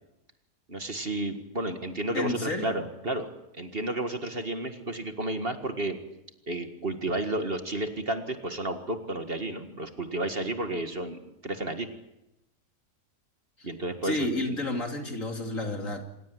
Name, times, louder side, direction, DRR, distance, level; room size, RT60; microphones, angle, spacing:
voice 1, 0.7-3.3 3.5-6.0 6.5-11.9 13.6-14.6, right 2 dB, 40° right, 7 dB, 2.0 m, -32 dB
voice 2, 2.1-2.8 13.6-13.7 14.0-16.1, left 2 dB, 55° left, 4 dB, 3.4 m, -31 dB
27.0 x 16.5 x 9.5 m, 0.89 s
omnidirectional pair, 1.6 m